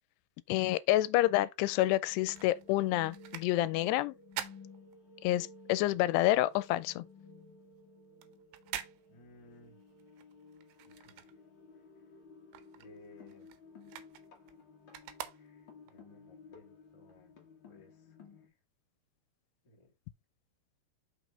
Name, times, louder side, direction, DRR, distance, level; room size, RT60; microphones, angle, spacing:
voice 1, 0.5-4.2 5.2-7.0, left 16 dB, 90° left, 2.6 m, -28 dB
sound 1, 1.6-18.5, left 3 dB, 65° left, 1.1 m, -55 dB
sound 2, 1.8-5.5 5.9-11.9 12.2-16.0 16.5-16.6, right 11 dB, 80° right, 2.6 m, -47 dB
voice 2, 9.1-9.8 10.8-11.4 11.7-11.8 12.7-13.6 15.3-18.5 19.6-19.9, left 2 dB, 15° left, 1.2 m, -60 dB
5.8 x 4.9 x 3.7 m
omnidirectional pair, 4.7 m